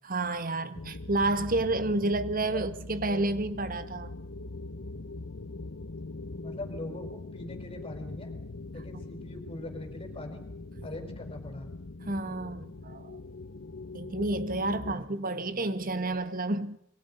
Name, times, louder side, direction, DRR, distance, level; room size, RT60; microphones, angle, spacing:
voice 1, 0.0-4.1 8.9-9.0 10.8-10.9 12.0-13.2 13.9-16.8, right 2 dB, 45° right, 1.7 m, -30 dB
sound 1, 0.7-14.9, left 2 dB, 65° left, 1.0 m, -42 dB
voice 2, 6.4-8.3 8.7-10.5 10.8-11.7 14.9-15.0 15.5-15.6, left 1 dB, 30° left, 5.1 m, -42 dB
29.0 x 23.5 x 5.5 m
head